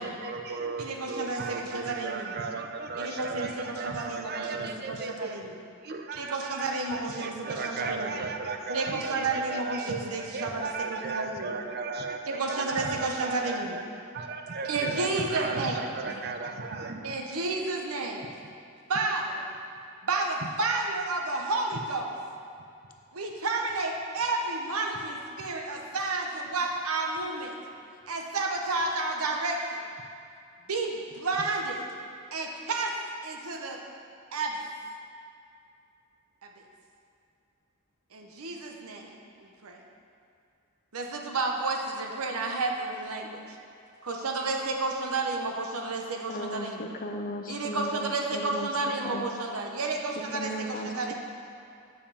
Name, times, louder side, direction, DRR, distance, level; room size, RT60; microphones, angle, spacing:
voice 1, 0.0-5.4 5.8-13.8 14.1-17.2, right 4 dB, 45° right, 5 dB, 0.6 m, -35 dB
voice 2, 0.8-2.4 3.0-5.5 6.1-8.2 8.7-11.5 12.3-13.8 14.7-15.9 17.0-18.3 18.9-19.4 20.0-22.1 23.1-27.6 28.1-29.8 30.7-31.8 32.3-33.0 33.2-33.8 34.3-34.6 36.4-36.5 38.1-39.8 40.9-43.6 44.0-46.9 47.5-51.1, right 3 dB, 80° right, 2 dB, 0.9 m, -31 dB
voice 3, 46.3-48.7 49.0-49.3 50.3-51.1, equal, 40° left, 4 dB, 0.7 m, -36 dB
7.3 x 5.2 x 6.9 m, 2.5 s
head